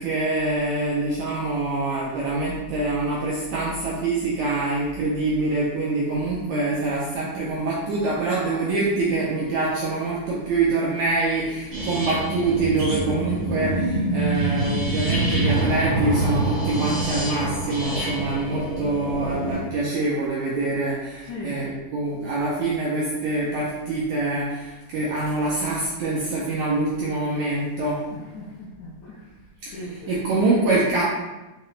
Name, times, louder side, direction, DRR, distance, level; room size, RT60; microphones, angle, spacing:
voice 1, 0.0-28.0 29.6-29.8 30.1-31.0, right 2 dB, 80° right, -5 dB, 1.7 m, -25 dB
sound 1, 11.7-19.6, right 2 dB, 60° right, 2.7 m, -25 dB
voice 2, 21.2-21.6 28.1-29.4 29.7-30.2, left 1 dB, 75° left, -7 dB, 1.6 m, -38 dB
5.7 x 2.9 x 3.2 m, 1.1 s
omnidirectional pair, 4.0 m